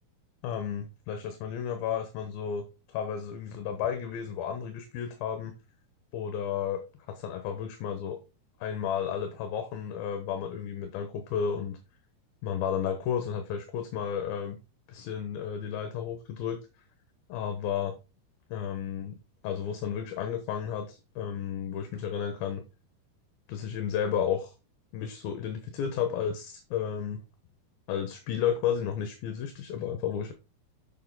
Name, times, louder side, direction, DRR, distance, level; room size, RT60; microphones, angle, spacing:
voice 1, 0.4-5.5 6.1-6.8 7.1-8.2 8.6-11.8 12.4-14.6 14.9-16.6 17.3-18.0 18.5-19.2 19.4-22.6 23.5-24.5 24.9-27.2 27.9-30.3, left 8 dB, 70° left, 7 dB, 2.7 m, -32 dB
7.2 x 6.7 x 3.9 m, 0.28 s
omnidirectional pair, 4.7 m